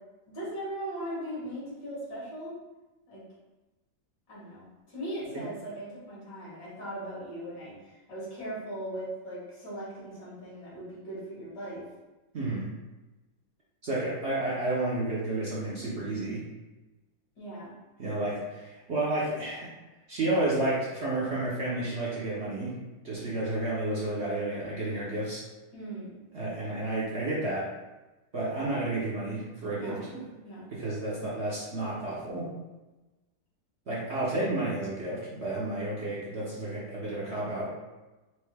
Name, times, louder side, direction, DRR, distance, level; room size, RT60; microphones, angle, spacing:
voice 1, 0.3-2.5 3.1-3.2 4.3-11.8 17.4-17.7 25.7-26.2 29.7-30.8, right 1 dB, 70° left, -8 dB, 2.1 m, -39 dB
voice 2, 12.3-12.7 13.8-16.4 18.0-19.7 20.1-22.8 23.0-25.4 26.3-27.7 28.3-30.2 30.7-32.5 33.9-37.7, right 2 dB, 50° right, -7 dB, 0.8 m, -31 dB
4.5 x 2.7 x 3.3 m, 1.1 s
omnidirectional pair, 1.9 m